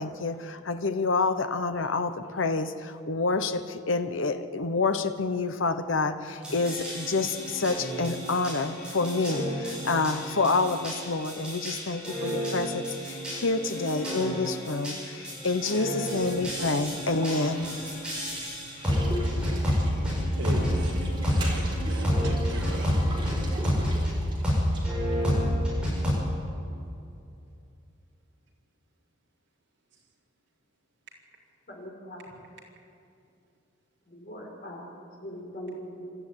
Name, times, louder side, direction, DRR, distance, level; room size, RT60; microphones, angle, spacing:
voice 1, 0.0-17.7, left 3 dB, 75° left, 9 dB, 1.0 m, -28 dB
sound 1, 6.4-24.1 24.4-26.1, equal, 5° right, 7.9 m, -29 dB
sound 2, 16.1-25.3, right 1 dB, 25° right, 4.1 m, -42 dB
voice 2, 20.4-22.9, right 1 dB, 60° right, -3 dB, 4.3 m, -38 dB
voice 3, 31.7-32.4 34.1-34.9 35.2-36.2, equal, 45° left, 0 dB, 4.5 m, -41 dB
25.5 x 13.0 x 9.8 m, 2.6 s
head